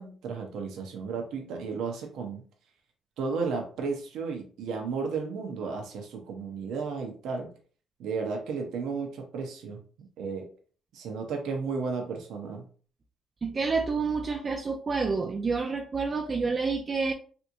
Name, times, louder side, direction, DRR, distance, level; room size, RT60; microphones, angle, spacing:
voice 1, 0.0-2.4 3.2-7.5 8.0-10.5 10.9-12.6, right 5 dB, 85° right, 0.7 m, -33 dB
voice 2, 13.4-17.1, right 4 dB, 40° right, 0.5 m, -28 dB
3.4 x 2.9 x 2.6 m
cardioid pair, 90°, 0 cm